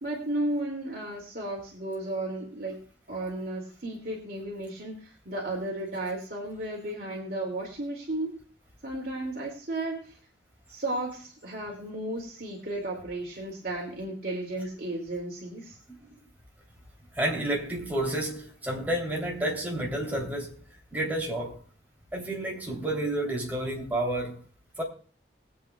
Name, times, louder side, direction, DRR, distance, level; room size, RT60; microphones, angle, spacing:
voice 1, 0.0-2.8 3.1-8.3 8.8-10.2 10.7-15.8, right 1 dB, 55° right, 2.5 m, -34 dB
voice 2, 17.1-20.6 20.9-21.6 22.1-24.4 24.8-24.9, right 1 dB, 10° right, 3.1 m, -30 dB
21.5 x 8.6 x 2.3 m
head